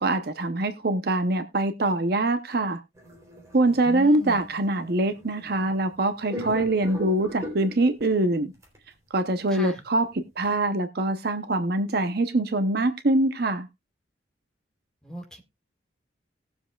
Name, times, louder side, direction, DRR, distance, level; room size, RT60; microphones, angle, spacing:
voice 1, 0.0-2.8 3.5-8.5 9.1-13.7, right 2 dB, 55° right, 0.8 m, -24 dB
sound 1, 2.9-5.9 6.3-8.0 8.6-8.8, equal, 15° right, 3.3 m, -40 dB
voice 2, 3.6-4.5 9.5-9.8 15.0-15.4, right 1 dB, 5° left, 1.9 m, -38 dB
19.0 x 7.2 x 2.3 m
head